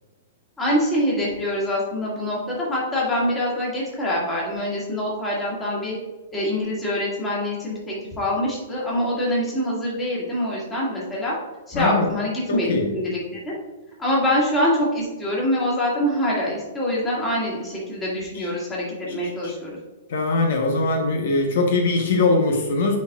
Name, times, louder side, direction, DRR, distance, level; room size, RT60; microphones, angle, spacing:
voice 1, 0.6-6.0 6.3-11.3 11.7-13.5 14.0-19.8, left 1 dB, 10° left, -6 dB, 1.9 m, -25 dB
voice 2, 11.7-12.1 12.5-12.9 18.3-18.4 19.4-19.5 20.1-23.0, left 3 dB, 60° left, 2 dB, 1.0 m, -21 dB
9.3 x 4.3 x 2.4 m, 1.2 s
hypercardioid pair, 170°, 0 cm